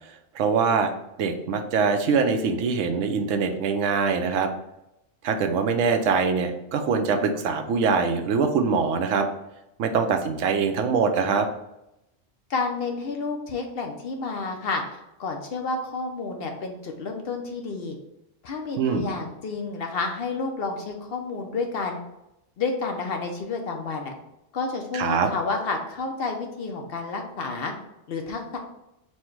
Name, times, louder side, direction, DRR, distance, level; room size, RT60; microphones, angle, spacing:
voice 1, 0.3-0.9 1.2-4.5 5.2-9.3 9.8-11.5 18.8-19.1 24.9-25.3, right 5 dB, 85° right, 6 dB, 0.9 m, -23 dB
voice 2, 12.5-14.8 15.2-18.0 18.4-22.0 22.6-24.1 24.5-27.7 28.1-28.6, left 4 dB, 60° left, 3 dB, 0.8 m, -30 dB
4.4 x 2.1 x 4.5 m, 0.87 s
omnidirectional pair, 1.3 m